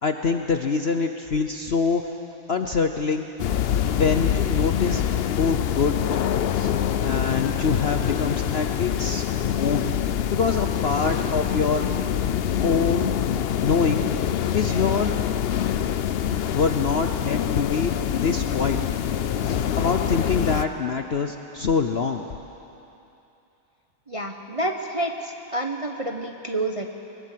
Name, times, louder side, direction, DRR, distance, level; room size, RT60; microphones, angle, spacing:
voice 1, 0.0-2.0 2.5-3.3 3.9-5.0 5.3-6.0 6.5-6.7 7.0-9.2 9.6-9.9 10.3-12.0 12.6-13.1 13.6-14.1 14.5-15.2 16.5-18.8 19.4-22.2, left 5 dB, 50° left, 6 dB, 0.8 m, -25 dB
sound 1, 3.4-20.7, left 9 dB, 85° left, 0.5 m, -25 dB
voice 2, 24.1-26.9, right 1 dB, 25° right, 3 dB, 0.7 m, -29 dB
21.0 x 20.0 x 7.5 m, 2.9 s
omnidirectional pair, 1.8 m